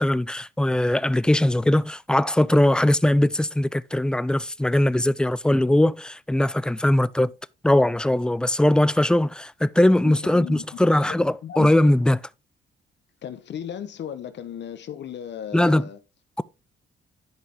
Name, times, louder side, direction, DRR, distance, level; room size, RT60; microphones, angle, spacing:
voice 1, 0.0-7.3 7.6-12.2 15.5-15.9, left 1 dB, 5° left, 0.4 m, -20 dB
voice 2, 10.0-10.6 10.9-11.7 13.2-16.0, left 9 dB, 65° left, 1.0 m, -36 dB
11.0 x 5.5 x 3.4 m
cardioid pair, 90°, 20 cm